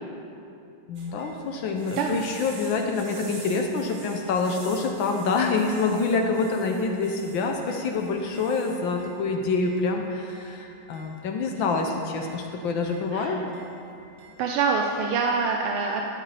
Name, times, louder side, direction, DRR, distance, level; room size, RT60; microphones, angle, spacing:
voice 1, 0.9-13.4, left 4 dB, 70° left, 3 dB, 1.4 m, -26 dB
sound 1, 0.9-15.1, right 3 dB, 55° right, 1.5 m, -48 dB
voice 2, 1.9-2.2 13.1-13.4 14.4-16.0, right 5 dB, 85° right, 1 dB, 1.5 m, -25 dB
12.5 x 9.3 x 3.3 m, 2.6 s
omnidirectional pair, 2.3 m